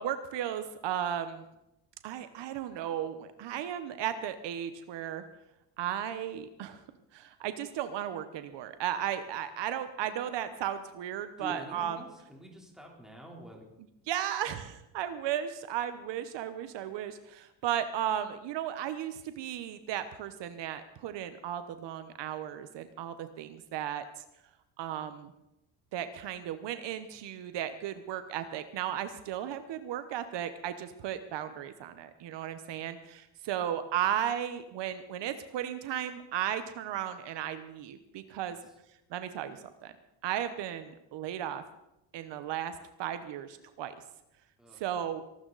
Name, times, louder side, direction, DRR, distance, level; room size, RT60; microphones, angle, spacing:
voice 1, 0.0-1.4 2.0-5.2 5.8-6.8 7.1-12.0 14.1-24.2 24.8-25.3 25.9-38.6 39.1-39.9 40.2-41.6 42.1-43.9 44.7-45.2, right 10 dB, 70° right, 11 dB, 1.1 m, -35 dB
voice 2, 11.4-13.7 38.5-38.7 44.6-44.8, right 1 dB, ahead, -1 dB, 3.7 m, -47 dB
23.0 x 13.0 x 4.1 m, 0.89 s
cardioid pair, 135°, 45 cm